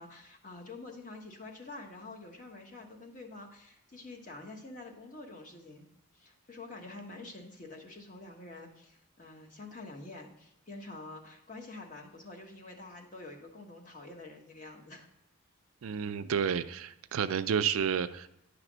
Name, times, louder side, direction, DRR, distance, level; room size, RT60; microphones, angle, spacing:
voice 1, 0.0-5.9 6.1-15.1, left 2 dB, 35° left, 1 dB, 1.1 m, -47 dB
voice 2, 15.8-18.3, right 7 dB, 70° right, 11 dB, 0.4 m, -30 dB
9.9 x 3.3 x 6.1 m, 0.84 s
head